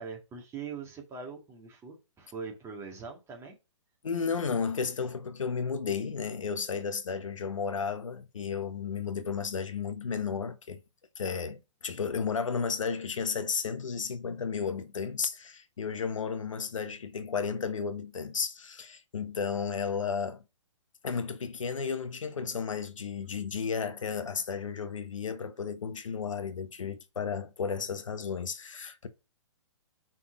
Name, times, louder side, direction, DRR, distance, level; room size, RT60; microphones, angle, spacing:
voice 1, 0.0-3.6, right 5 dB, 15° right, 2.0 m, -42 dB
voice 2, 4.0-10.8 11.2-20.4 21.0-29.1, left 6 dB, 90° left, 1.1 m, -33 dB
5.8 x 4.2 x 4.9 m
hypercardioid pair, 145°, 16 cm